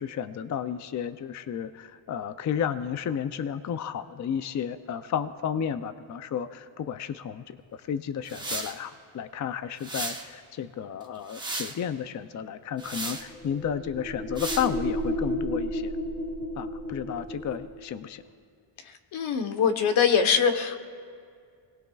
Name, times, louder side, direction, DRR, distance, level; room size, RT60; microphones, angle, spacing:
voice 1, 0.0-7.4 7.7-15.9 16.6-18.2, left 8 dB, 40° left, 11 dB, 0.4 m, -32 dB
sound 1, 8.3-8.8 9.8-10.3 11.0-11.8 12.8-13.2 14.4-14.7, right 2 dB, 10° right, 1.0 m, -34 dB
sound 2, 12.8-17.8, equal, 20° left, 3.2 m, -32 dB
voice 2, 19.1-20.8, left 7 dB, 80° left, 7 dB, 1.2 m, -23 dB
29.0 x 19.5 x 2.3 m, 2.2 s
wide cardioid pair, 165°, 47 cm